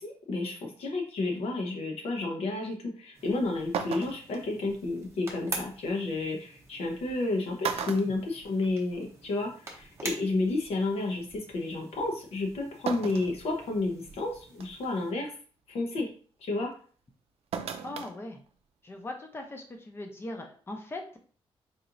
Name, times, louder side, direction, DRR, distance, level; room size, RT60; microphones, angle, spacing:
voice 1, 0.0-15.3 15.7-16.1 16.4-16.7, left 2 dB, 80° left, 1 dB, 1.0 m, -31 dB
sound 1, 3.1-15.1, right 2 dB, 25° right, 0.8 m, -46 dB
sound 2, 3.2-3.3 3.7-4.4 6.0-6.1 7.1-7.2 7.6-9.0 9.3-9.4 10.7-10.8 12.9-13.4 13.9-14.0 14.6-14.9 17.5-18.1 18.5-18.6, right 7 dB, 75° right, 0.4 m, -35 dB
voice 2, 17.8-18.4 18.8-21.2, left 2 dB, 25° left, 3 dB, 0.6 m, -40 dB
4.2 x 2.9 x 2.5 m, 0.44 s
wide cardioid pair, 170°, 10 cm